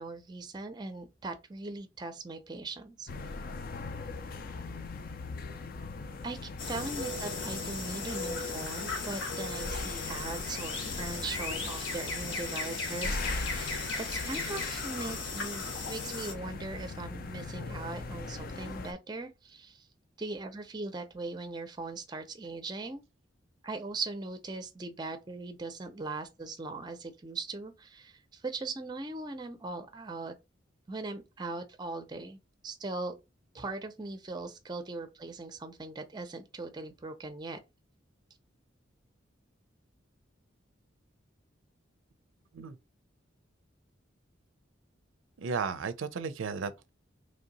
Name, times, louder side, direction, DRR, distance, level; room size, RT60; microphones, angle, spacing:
voice 1, 0.0-3.1 6.2-6.4 6.7-19.9 20.2-23.0 23.6-30.3 30.9-33.2 33.5-37.6, right 3 dB, 20° right, 0.5 m, -40 dB
sound 1, 3.1-18.9, left 3 dB, 50° left, 0.5 m, -40 dB
sound 2, 6.6-16.3, left 3 dB, 80° left, 1.1 m, -37 dB
voice 2, 45.4-46.9, right 5 dB, 85° right, 0.4 m, -34 dB
3.2 x 2.7 x 3.9 m
head